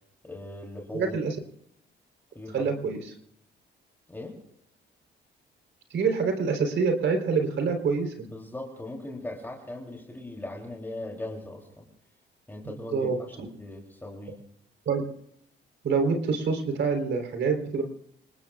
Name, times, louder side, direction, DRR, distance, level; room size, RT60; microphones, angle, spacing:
voice 1, 0.2-1.2 2.3-2.9 4.1-4.4 8.2-11.9 12.5-14.4, left 2 dB, 10° left, -1 dB, 3.2 m, -39 dB
voice 2, 0.9-1.4 2.5-3.1 5.9-8.3 12.6-13.2 14.9-15.0 15.8-17.8, right 5 dB, 65° right, 5 dB, 3.8 m, -26 dB
27.0 x 20.0 x 2.4 m, 0.74 s
cardioid pair, 90°, 20 cm